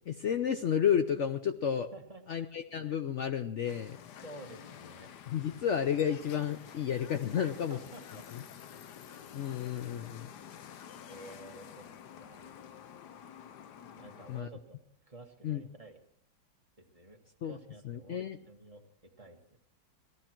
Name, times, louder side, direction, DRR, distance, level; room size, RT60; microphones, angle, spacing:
voice 1, 0.1-1.9 2.3-4.0 5.3-7.8 8.3-8.4 9.1-10.2 14.3-14.5 15.4-15.6 17.4-17.6 17.8-18.4, left 8 dB, 85° left, 8 dB, 0.6 m, -31 dB
voice 2, 1.9-2.5 4.2-5.1 7.4-8.3 8.7-8.8 9.7-9.9 11.1-11.9 12.2-12.5 14.0-16.0 16.8-19.6, right 2 dB, 20° right, 2 dB, 1.6 m, -51 dB
sound 1, 3.6-14.4, left 9 dB, 65° left, 1.3 m, -50 dB
18.0 x 14.0 x 4.5 m, 0.64 s
omnidirectional pair, 2.1 m